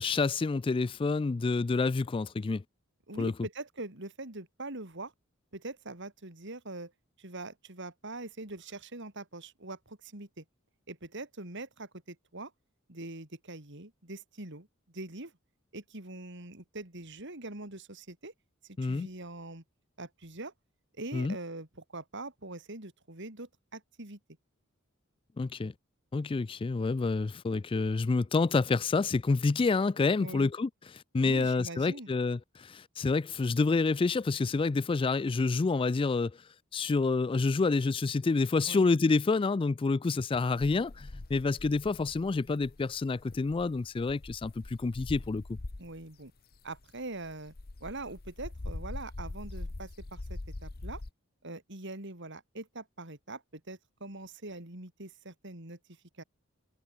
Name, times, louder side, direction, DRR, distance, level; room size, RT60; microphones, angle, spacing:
voice 1, 0.0-2.6 3.2-3.3 18.8-19.1 21.1-21.4 25.4-25.7 26.1-36.4 36.7-45.6, left 3 dB, 25° left, 0.3 m, -28 dB
voice 2, 3.1-5.1 5.5-6.9 7.2-10.4 10.9-12.5 12.9-15.3 15.7-18.3 18.6-19.6 20.0-20.5 21.0-24.2 30.2-30.5 31.2-32.1 38.7-38.9 45.8-46.3 46.6-47.5 47.8-51.0 51.4-55.8 56.2-56.3, right 2 dB, 60° right, 4.4 m, -43 dB
sound 1, 40.6-46.0 46.5-51.1, left 2 dB, 50° left, 0.9 m, -43 dB
head